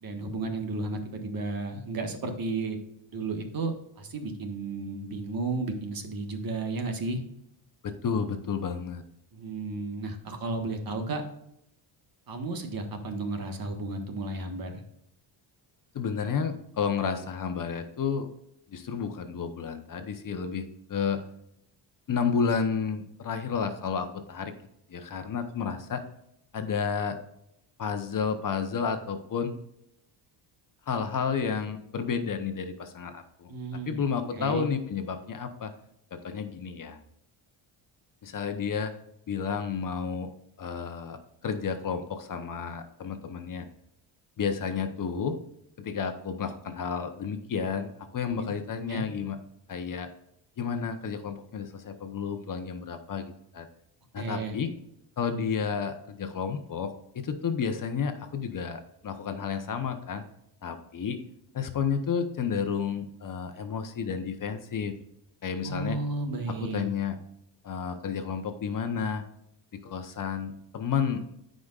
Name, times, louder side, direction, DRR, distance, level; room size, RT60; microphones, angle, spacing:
voice 1, 0.0-2.8 3.1-7.2 9.3-11.2 12.3-14.8 33.5-34.0 34.3-34.7 48.2-48.5 48.9-49.0 54.2-54.6 65.6-66.9, right 3 dB, 45° right, 5 dB, 1.5 m, -33 dB
voice 2, 7.8-9.0 15.9-18.3 18.7-21.2 22.1-24.5 24.9-26.0 26.5-27.2 27.8-29.6 30.9-33.5 33.9-35.7 36.1-37.0 38.2-38.9 39.3-40.3 40.6-43.7 44.4-45.4 45.8-49.4 49.7-50.1 50.6-53.7 54.1-54.7 55.2-60.2 60.6-61.2 61.5-65.0 65.4-66.0 66.6-67.2 67.6-69.2 69.7-71.3, left 6 dB, 40° left, 7 dB, 1.0 m, -31 dB
13.5 x 5.2 x 2.4 m, 0.78 s
cardioid pair, 115°, 47 cm